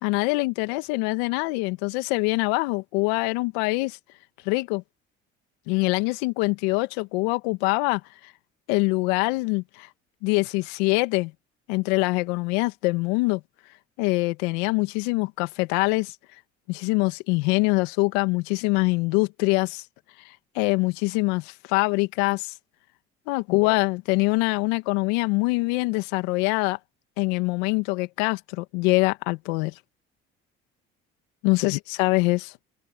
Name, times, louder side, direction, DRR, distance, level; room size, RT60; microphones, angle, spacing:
voice 1, 0.0-4.0 4.5-4.8 5.7-8.0 8.7-9.9 10.2-11.3 11.7-13.4 14.0-16.1 16.7-19.8 20.6-22.5 23.3-26.8 27.2-29.7 31.4-32.5, left 26 dB, 80° left, 2.0 m, -24 dB
open air
hypercardioid pair, 60°, 32 cm